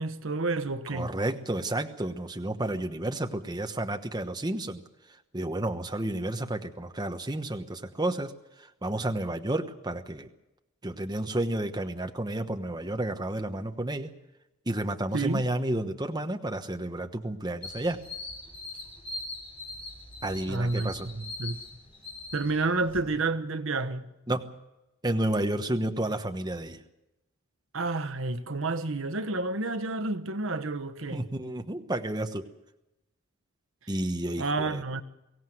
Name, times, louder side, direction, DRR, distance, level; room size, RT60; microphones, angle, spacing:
voice 1, 0.0-1.1 15.1-15.5 20.5-21.6 22.3-24.0 27.7-31.2 34.4-35.0, right 3 dB, 65° right, 1.2 m, -30 dB
voice 2, 0.9-4.8 5.3-8.3 8.6-10.3 10.8-14.1 14.7-18.0 20.2-21.1 24.3-24.5 25.0-26.8 31.1-32.5 33.9-34.8, right 1 dB, 20° right, 1.1 m, -31 dB
sound 1, 17.6-23.0, left 2 dB, 25° left, 6.2 m, -42 dB
23.5 x 16.5 x 7.8 m
head